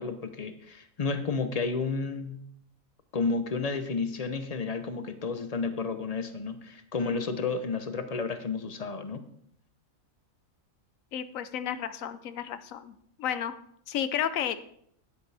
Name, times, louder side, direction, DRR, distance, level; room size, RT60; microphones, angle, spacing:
voice 1, 0.0-2.4 3.1-9.3, left 4 dB, 40° left, 9 dB, 0.6 m, -31 dB
voice 2, 11.1-12.9 13.2-13.5 13.9-14.6, left 9 dB, 75° left, 13 dB, 1.0 m, -32 dB
9.5 x 9.4 x 3.4 m, 0.68 s
omnidirectional pair, 1.4 m